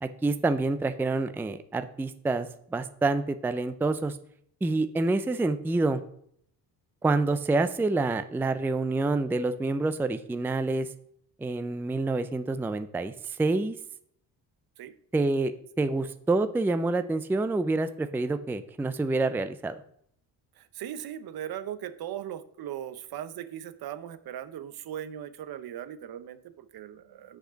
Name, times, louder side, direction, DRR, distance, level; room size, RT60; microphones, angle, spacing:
voice 1, 0.0-4.2 4.6-6.0 7.0-10.9 11.4-13.7 15.1-15.5 15.8-19.8, right 3 dB, 5° right, 11 dB, 0.4 m, -27 dB
voice 2, 20.5-27.4, right 10 dB, 65° right, 13 dB, 0.8 m, -39 dB
6.5 x 5.1 x 5.6 m, 0.67 s
cardioid pair, 95°, 40 cm